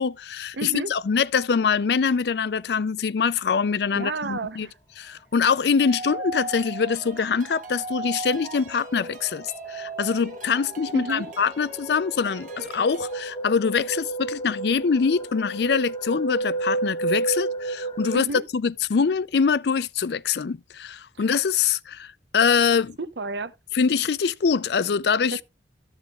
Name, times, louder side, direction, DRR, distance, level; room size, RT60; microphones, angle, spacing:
voice 1, 0.0-4.7 5.0-23.0 23.7-25.4, left 6 dB, 70° left, 0.4 m, -24 dB
voice 2, 0.5-0.9 3.9-4.8 10.9-11.3 18.1-18.4 21.1-21.3 23.0-23.5 25.3-25.4, right 3 dB, 80° right, 0.8 m, -31 dB
sound 1, 5.8-13.2, right 3 dB, 45° right, 1.7 m, -37 dB
sound 2, 6.9-7.0 7.3-18.2, right 3 dB, 25° left, 0.9 m, -32 dB
14.0 x 7.4 x 2.4 m
head